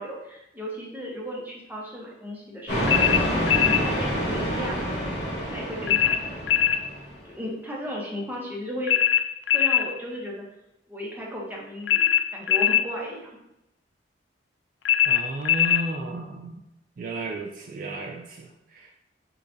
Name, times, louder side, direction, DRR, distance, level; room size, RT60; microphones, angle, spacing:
voice 1, 0.0-3.0 3.5-5.1 5.5-6.6 7.2-9.0 9.5-10.4 10.9-13.3, left 1 dB, 10° right, -3 dB, 0.8 m, -35 dB
sound 1, 2.7-7.2, equal, 60° left, 1.6 m, -27 dB
sound 2, 2.9-3.9 5.9-6.8 8.9-9.9 11.9-12.9 14.8-15.9, left 10 dB, 75° left, 0.4 m, -21 dB
voice 2, 15.1-16.6 17.0-18.9, right 2 dB, 45° right, 2 dB, 0.3 m, -34 dB
6.6 x 2.4 x 2.6 m, 0.85 s
head